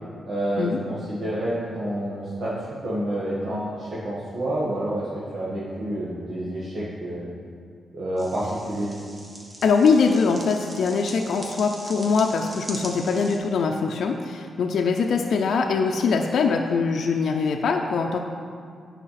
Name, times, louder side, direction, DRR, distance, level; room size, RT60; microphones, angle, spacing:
voice 1, 0.3-2.5 2.8-5.1 5.3-7.3 7.9-8.9, right 1 dB, 60° right, -9 dB, 1.6 m, -28 dB
sound 1, 8.2-13.4, right 1 dB, 25° right, 1.2 m, -41 dB
voice 2, 9.6-18.2, left 5 dB, 75° left, 2 dB, 0.5 m, -22 dB
9.1 x 4.9 x 5.7 m, 2.2 s
wide cardioid pair, 125°, 0 cm